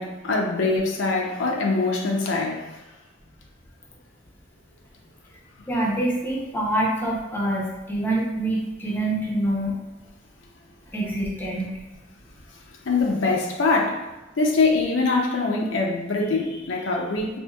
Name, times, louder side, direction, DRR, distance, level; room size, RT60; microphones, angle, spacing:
voice 1, 0.0-2.6 12.9-14.0 14.4-17.4, left 3 dB, 70° left, 0 dB, 0.5 m, -23 dB
voice 2, 5.7-9.8 10.9-11.7, right 1 dB, 10° left, -4 dB, 0.6 m, -25 dB
4.4 x 2.6 x 2.3 m, 1.1 s
head